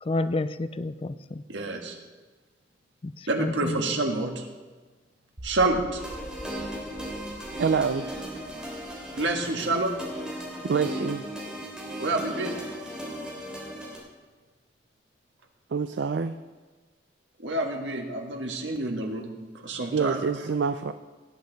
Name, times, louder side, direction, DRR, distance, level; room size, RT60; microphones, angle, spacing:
voice 1, 0.0-1.4 3.0-3.9, left 2 dB, 30° left, 13 dB, 0.4 m, -30 dB
voice 2, 1.5-2.0 3.3-4.5 5.4-6.0 9.2-9.9 12.0-12.6 17.4-19.3 19.6-20.2, right 2 dB, 90° right, 3 dB, 1.6 m, -28 dB
sound 1, 5.4-11.5, equal, 50° right, 1.8 m, -47 dB
sound 2, 6.0-14.0, equal, 5° right, 3.0 m, -36 dB
voice 3, 7.5-8.0 10.6-11.2 15.7-16.3 19.9-20.9, right 5 dB, 70° right, 10 dB, 0.4 m, -26 dB
17.5 x 8.5 x 4.0 m, 1.3 s
head